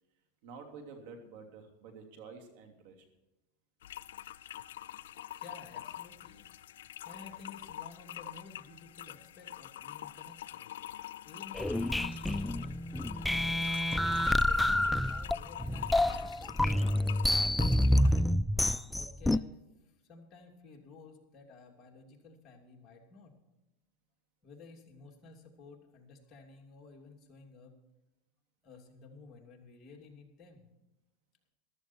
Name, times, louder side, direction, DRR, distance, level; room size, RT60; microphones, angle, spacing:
voice 1, 0.4-3.0, right 5 dB, 65° right, 5 dB, 3.0 m, -49 dB
sound 1, 3.8-18.2, left 12 dB, 90° left, 0.5 m, -45 dB
voice 2, 5.4-6.5 6.7-10.7 11.2-11.9 13.1-13.4 14.1-18.5 18.9-23.3 24.4-27.7 28.6-30.7, left 4 dB, 30° left, 0 dB, 2.8 m, -54 dB
sound 2, 11.5-19.4, left 1 dB, 5° left, 0.3 m, -28 dB
14.0 x 13.5 x 4.6 m, 1.0 s
supercardioid pair, 135°, 0 cm